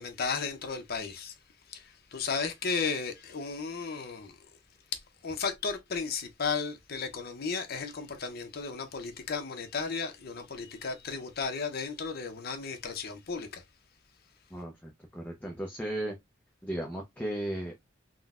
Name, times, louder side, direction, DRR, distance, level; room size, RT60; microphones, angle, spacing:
voice 1, 0.0-1.3 1.7-1.8 2.1-4.3 5.2-13.6, left 5 dB, 55° left, 0.6 m, -34 dB
voice 2, 14.5-16.2 16.6-17.9, right 1 dB, 10° left, 0.5 m, -36 dB
3.7 x 2.1 x 2.3 m
head